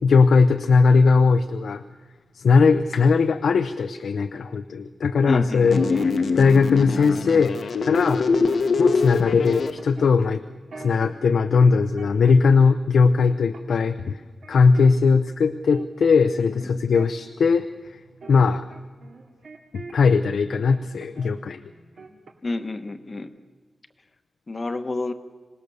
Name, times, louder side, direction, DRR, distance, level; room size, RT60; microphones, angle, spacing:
voice 1, 0.0-1.8 2.4-5.8 6.4-7.6 7.8-8.3 8.8-10.4 10.8-14.2 14.5-17.7 18.3-18.7 19.7-21.6, left 5 dB, 85° left, 9 dB, 0.6 m, -19 dB
voice 2, 5.3-6.4 22.4-23.3 24.5-25.1, left 2 dB, 30° left, 9 dB, 1.0 m, -30 dB
sound 1, 5.6-6.7 7.2-7.6 7.9-9.2 9.8-11.3 11.7-12.6 12.9-15.1 15.4-20.3 20.7-21.3 21.6-22.7 22.9-23.2, right 4 dB, 70° right, 2.3 m, -45 dB
sound 2, 5.7-9.7, left 4 dB, 65° left, 1.0 m, -23 dB
26.5 x 18.5 x 6.9 m, 1.4 s
wide cardioid pair, 170°, 0 cm